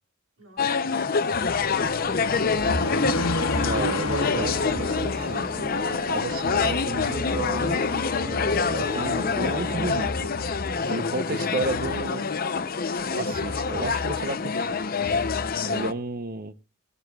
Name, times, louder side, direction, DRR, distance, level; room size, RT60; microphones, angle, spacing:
voice 1, 0.4-1.1 1.5-2.4 6.3-6.5 10.9-11.5 11.7-11.9, right 2 dB, 65° right, 3.3 m, -49 dB
sound 1, 0.6-15.9, left 5 dB, 45° left, 0.6 m, -26 dB
sound 2, 1.6-10.6, left 2 dB, 75° left, 1.3 m, -33 dB
voice 2, 3.5-5.7 6.1-7.8 8.7-10.3 10.9-12.2 13.1-14.8 15.7-16.5, right 3 dB, 45° right, 0.8 m, -32 dB
sound 3, 4.0-10.1, left 1 dB, 25° right, 2.5 m, -37 dB
17.5 x 12.5 x 2.3 m
head